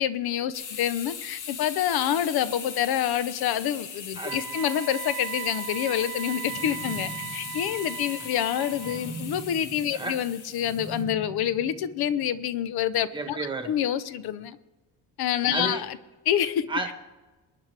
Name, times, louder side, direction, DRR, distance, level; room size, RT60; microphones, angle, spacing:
voice 1, 0.0-13.4 13.6-14.6 15.2-16.0 16.3-16.7, left 10 dB, 70° left, 14 dB, 0.8 m, -27 dB
sound 1, 0.5-11.0, left 6 dB, 50° left, 1.3 m, -39 dB
Wind instrument woodwind instrument, 4.2-9.1, right 16 dB, 85° right, 0.8 m, -38 dB
sound 2, 6.4-12.5, right 2 dB, 20° left, 1.8 m, -42 dB
voice 2, 13.1-13.7 15.5-15.9 16.7-16.9, right 3 dB, 10° right, 6 dB, 1.2 m, -31 dB
22.5 x 9.9 x 3.4 m, 1.1 s
cardioid pair, 170°, 39 cm